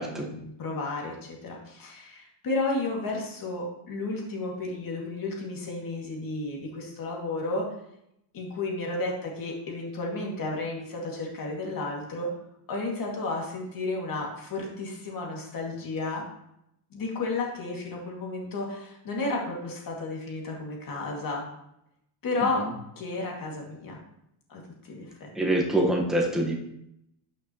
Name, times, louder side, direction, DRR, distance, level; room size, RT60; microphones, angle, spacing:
voice 1, 0.0-7.7 8.3-12.3 12.7-16.2 16.9-21.4 22.2-22.6 23.0-24.0 24.5-24.6 24.9-25.3, left 2 dB, 45° left, -1 dB, 2.4 m, -32 dB
voice 2, 25.3-26.5, right 1 dB, ahead, -2 dB, 1.4 m, -25 dB
12.0 x 6.4 x 3.1 m, 0.79 s
cardioid pair, 155°, 49 cm